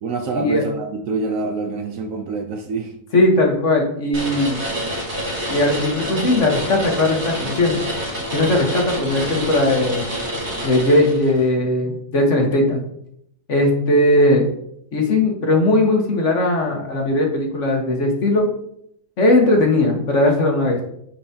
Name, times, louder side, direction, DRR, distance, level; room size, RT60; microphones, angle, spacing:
voice 1, 0.0-2.9, right 3 dB, 65° right, 4 dB, 0.9 m, -26 dB
voice 2, 3.1-4.6 5.5-7.8 8.3-10.0 10.6-12.8 13.5-14.4 14.9-18.5 19.2-20.8, left 1 dB, 50° left, 1 dB, 1.4 m, -18 dB
sound 1, 4.1-11.4, equal, 40° right, 2.6 m, -27 dB
8.6 x 4.5 x 2.8 m, 0.72 s
omnidirectional pair, 1.8 m